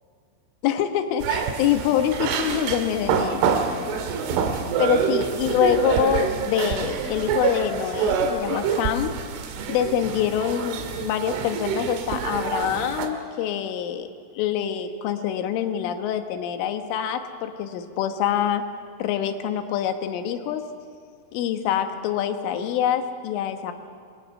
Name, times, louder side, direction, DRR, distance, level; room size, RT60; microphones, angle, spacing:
voice 1, 0.6-3.4 4.8-9.1 9.7-14.1 14.3-18.7 19.0-20.7 21.3-23.7, left 9 dB, 75° left, 7 dB, 3.6 m, -25 dB
sound 1, 1.2-13.1, right 6 dB, 70° right, 4.1 m, -26 dB
28.5 x 22.5 x 6.6 m, 2.2 s
omnidirectional pair, 6.0 m